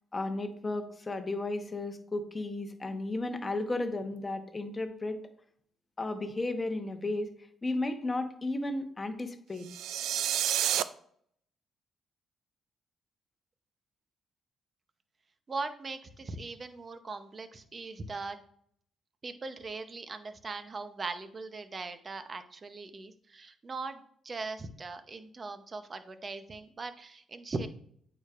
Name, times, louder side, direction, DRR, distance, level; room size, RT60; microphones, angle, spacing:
voice 1, 0.1-5.2 6.0-7.3 7.6-9.7, left 2 dB, 25° left, 7 dB, 1.0 m, -34 dB
sound 1, 9.6-10.8, right 11 dB, 85° right, 0.3 m, -29 dB
voice 2, 15.5-18.4 19.2-27.7, right 3 dB, 35° right, 9 dB, 0.7 m, -40 dB
8.8 x 5.0 x 2.5 m, 0.64 s
cardioid pair, 90°, 0 cm